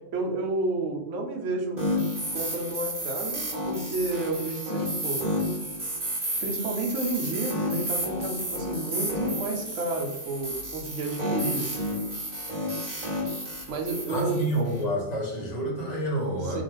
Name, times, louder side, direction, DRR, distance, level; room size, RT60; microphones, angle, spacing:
voice 1, 0.1-1.8 2.3-5.2 6.4-11.8 13.7-14.4 16.4-16.6, right 2 dB, 65° right, 2 dB, 0.8 m, -31 dB
sound 1, 1.8-14.8, equal, 35° right, 0.9 m, -31 dB
voice 2, 14.1-16.6, right 1 dB, 40° left, -2 dB, 0.6 m, -28 dB
2.4 x 2.3 x 3.1 m, 0.90 s
omnidirectional pair, 1.6 m